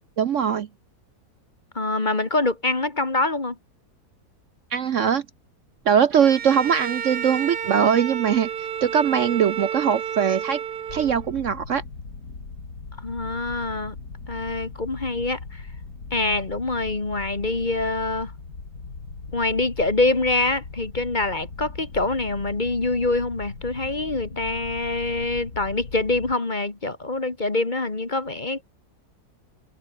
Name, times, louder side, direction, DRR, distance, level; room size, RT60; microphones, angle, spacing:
voice 1, 0.2-0.7 4.7-5.2 5.9-10.6 10.9-11.8, right 8 dB, 55° right, 1.0 m, -21 dB
voice 2, 1.7-3.6 13.0-14.0 14.3-15.6 16.1-18.3 19.3-28.6, left 2 dB, 30° left, 2.1 m, -25 dB
Bowed string instrument, 6.1-11.4, right 8 dB, 80° right, 1.9 m, -31 dB
sound 1, 10.9-26.4, left 4 dB, 75° left, 3.8 m, -39 dB
omnidirectional pair, 1.7 m